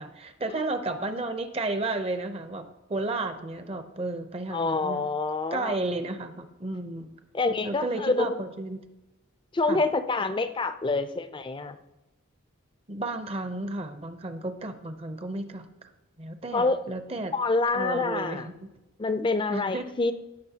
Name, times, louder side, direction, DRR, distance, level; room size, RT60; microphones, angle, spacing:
voice 1, 0.0-5.1 5.5-7.1 7.6-8.8 9.7-9.8 12.9-15.9 16.2-17.3 17.7-18.7 19.5-19.8, right 2 dB, 30° right, 9 dB, 0.6 m, -33 dB
voice 2, 4.5-5.7 7.3-8.4 9.5-11.8 16.5-16.8 17.3-18.5 19.0-20.1, left 3 dB, 20° left, 10 dB, 0.4 m, -27 dB
17.0 x 6.2 x 2.8 m, 1.0 s
head